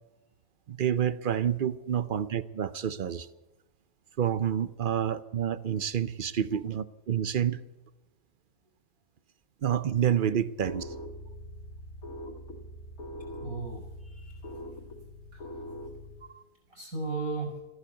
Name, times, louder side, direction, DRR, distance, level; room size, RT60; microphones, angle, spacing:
voice 1, 0.7-3.3 4.2-7.6 9.6-10.9 16.3-16.4, right 9 dB, 55° right, 16 dB, 0.6 m, -28 dB
sound 1, 10.6-16.3, left 1 dB, 90° left, 2.2 m, -42 dB
voice 2, 13.4-14.5 15.3-15.4 16.7-17.6, right 3 dB, 80° right, 1 dB, 6.5 m, -36 dB
15.5 x 11.0 x 8.1 m, 1.1 s
omnidirectional pair, 1.5 m